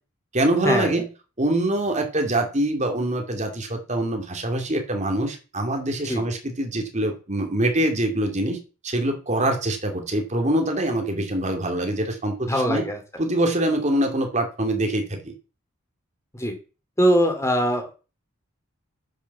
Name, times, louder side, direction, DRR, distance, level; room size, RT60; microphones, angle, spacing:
voice 1, 0.3-1.1 1.4-8.6 8.8-12.8 13.2-15.3, right 1 dB, 35° right, 4 dB, 2.7 m, -24 dB
voice 2, 12.5-13.0 16.3-16.6 17.0-17.9, equal, 15° left, 5 dB, 2.5 m, -21 dB
10.5 x 7.3 x 7.2 m, 0.34 s
head